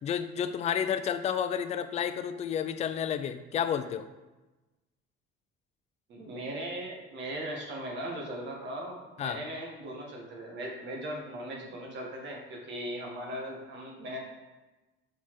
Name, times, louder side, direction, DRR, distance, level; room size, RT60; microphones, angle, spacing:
voice 1, 0.0-4.1 9.2-9.4, left 8 dB, 35° left, 9 dB, 0.4 m, -31 dB
voice 2, 6.1-14.2, right 1 dB, 60° right, -1 dB, 1.6 m, -38 dB
5.5 x 4.1 x 4.8 m, 1.1 s
cardioid pair, 120°, 21 cm